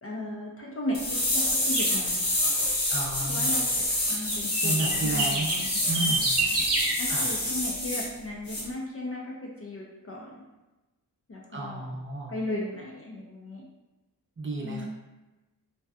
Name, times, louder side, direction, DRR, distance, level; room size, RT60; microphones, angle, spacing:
voice 1, 0.0-2.2 3.3-3.6 4.1-6.6 7.0-10.4 11.3-11.9 12.3-13.7 14.6-14.9, left 1 dB, 35° left, -3 dB, 0.4 m, -36 dB
sound 1, 0.9-8.1 8.5-8.6, left 1 dB, 55° left, 0.8 m, -27 dB
sound 2, 1.7-1.9 4.2-6.9, right 2 dB, 70° right, 0.7 m, -28 dB
voice 2, 2.9-3.6 4.6-5.5 5.9-6.3 7.1-7.4 11.5-12.3 14.4-14.9, right 2 dB, 30° right, -2 dB, 0.5 m, -32 dB
2.6 x 2.2 x 2.3 m, 1.1 s
wide cardioid pair, 85°, 42 cm